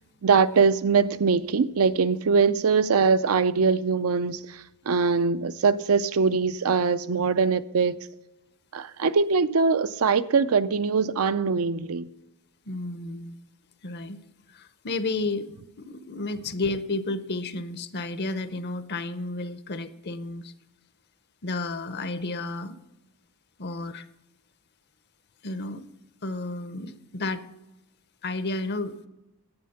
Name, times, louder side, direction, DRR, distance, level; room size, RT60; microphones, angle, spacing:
voice 1, 0.2-8.0 8.7-12.1, right 5 dB, 70° right, 0.5 m, -22 dB
voice 2, 12.7-13.4 13.8-14.2 14.5-15.5 15.8-20.5 21.4-22.7 23.6-24.1 25.4-25.8 26.2-27.4 28.2-29.1, left 2 dB, 50° left, 0.7 m, -32 dB
10.5 x 8.6 x 5.7 m
head